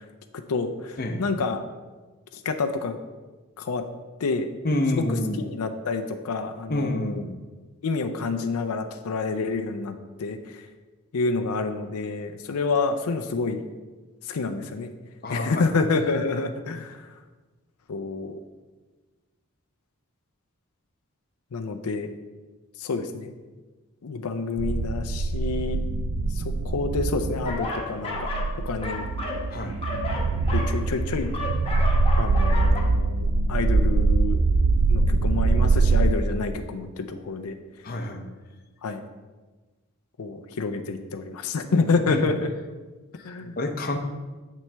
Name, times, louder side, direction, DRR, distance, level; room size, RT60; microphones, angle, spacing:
voice 1, 0.5-1.6 2.3-3.0 3.6-3.8 4.2-4.5 4.9-5.0 5.4-7.2 7.8-10.4 11.1-13.6 14.3-14.9 15.3-17.0 17.9-18.4 21.5-22.1 22.8-23.3 24.0-25.8 26.4-28.3 28.7-29.1 30.5-31.3 32.2-34.4 34.9-37.6 38.8-39.0 40.2-42.5 43.2-43.6, left 4 dB, 90° left, 6 dB, 0.5 m, -28 dB
voice 2, 4.6-5.4 6.7-7.3 15.2-15.7 29.5-29.7 37.8-38.3 42.0-42.3 43.1-43.3 43.6-44.0, left 1 dB, 40° left, 4 dB, 0.7 m, -28 dB
sound 1, 24.6-36.2, right 3 dB, 55° right, 0.3 m, -23 dB
sound 2, 27.4-28.5 28.8-32.8, left 2 dB, 25° left, 1.0 m, -32 dB
7.7 x 6.0 x 3.4 m, 1.3 s
head